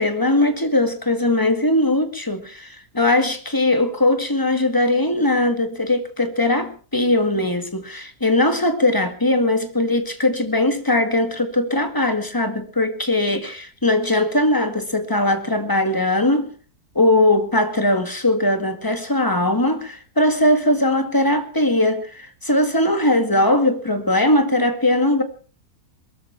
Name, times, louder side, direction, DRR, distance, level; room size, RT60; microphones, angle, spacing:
voice 1, 0.0-16.5 17.0-25.2, left 1 dB, 15° left, 1.9 m, -20 dB
22.0 x 13.5 x 4.5 m
omnidirectional pair, 1.7 m